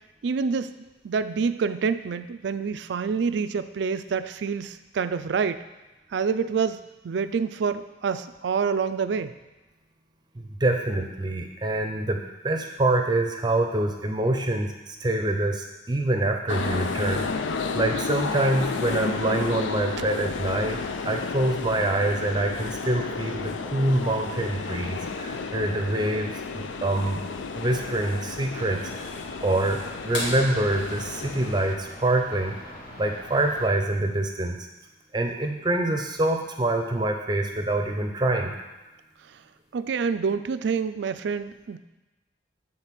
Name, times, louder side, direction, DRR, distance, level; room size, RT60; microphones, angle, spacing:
voice 1, 0.2-0.7 1.0-5.6 6.1-9.3 39.7-41.8, right 5 dB, 65° right, 12 dB, 0.4 m, -27 dB
voice 2, 10.4-17.2 17.7-20.8 21.1-27.2 27.6-29.1 29.4-32.5 33.0-34.6 35.1-38.5, right 2 dB, 25° right, 4 dB, 0.6 m, -25 dB
sound 1, 16.5-31.7, left 4 dB, 85° left, 0.5 m, -32 dB
sound 2, 28.5-33.7, left 1 dB, 45° left, 1.1 m, -43 dB
sound 3, 30.1-32.6 34.5-34.6 36.8-36.9 38.6-38.9 39.7-39.8, left 1 dB, 65° left, 1.7 m, -36 dB
8.0 x 3.8 x 5.8 m, 1.1 s
head